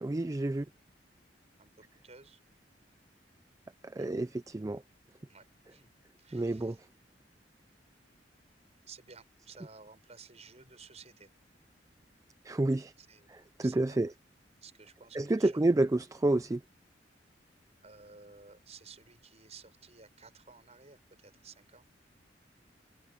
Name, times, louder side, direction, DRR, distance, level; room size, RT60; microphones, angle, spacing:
voice 1, 0.0-0.7 3.9-4.8 6.3-6.8 12.4-12.9 13.6-14.1 15.1-16.6, right 2 dB, 20° right, 0.4 m, -29 dB
voice 2, 1.6-2.4 4.0-4.1 5.3-5.9 6.2-6.8 8.9-11.3 12.8-13.3 13.6-14.2 14.6-15.8 17.8-21.9, right 5 dB, 40° right, 6.3 m, -55 dB
head